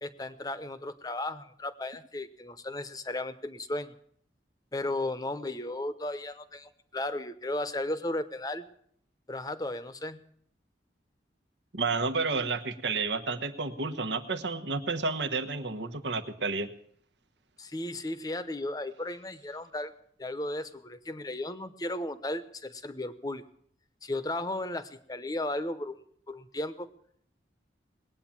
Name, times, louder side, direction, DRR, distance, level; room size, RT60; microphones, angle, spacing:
voice 1, 0.0-3.9 4.7-8.7 9.3-10.2 17.6-19.9 20.2-23.4 24.0-26.0 26.3-26.9, left 1 dB, 20° left, 12 dB, 0.8 m, -35 dB
voice 2, 11.7-16.7, right 4 dB, 85° right, 7 dB, 1.2 m, -31 dB
20.0 x 9.0 x 7.4 m, 0.64 s
head